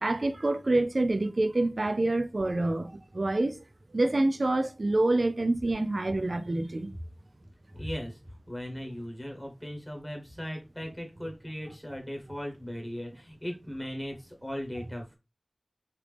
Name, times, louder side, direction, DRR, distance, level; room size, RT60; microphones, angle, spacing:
voice 1, 0.0-3.6 3.9-6.9, right 2 dB, 60° right, 0.4 m, -27 dB
voice 2, 7.7-8.2 8.5-15.2, equal, 15° left, 1.0 m, -38 dB
3.3 x 2.4 x 3.3 m
wide cardioid pair, 55°, 0 cm